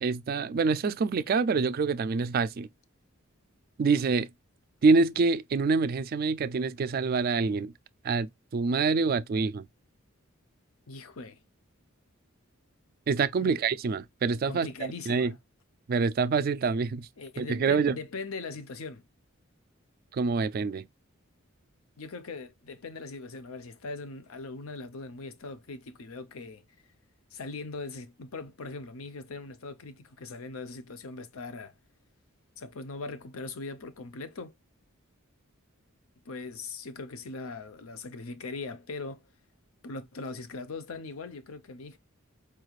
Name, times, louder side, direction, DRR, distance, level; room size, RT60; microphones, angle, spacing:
voice 1, 0.0-2.7 3.8-4.3 4.8-7.7 8.0-9.7 13.1-14.7 15.1-15.3 15.9-17.1 17.4-18.0 20.1-20.9, right 4 dB, 45° right, 0.3 m, -26 dB
voice 2, 10.9-11.4 13.4-13.6 14.4-15.3 17.2-19.0 22.0-26.6 27.3-31.7 32.6-34.5 36.3-39.2 39.8-42.0, left 3 dB, 80° left, 0.6 m, -40 dB
4.6 x 3.2 x 2.3 m
head